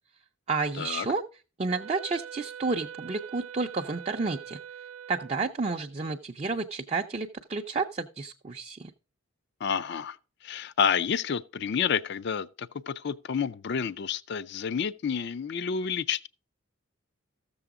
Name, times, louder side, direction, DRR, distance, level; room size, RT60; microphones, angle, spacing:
voice 1, 0.5-1.2 1.6-4.6 5.1-8.9, right 4 dB, 30° right, 0.4 m, -31 dB
Wind instrument woodwind instrument, 1.7-5.5, right 8 dB, 80° right, 0.5 m, -43 dB
voice 2, 9.6-10.2 10.4-16.3, left 7 dB, 50° left, 0.4 m, -29 dB
14.0 x 6.9 x 3.6 m
head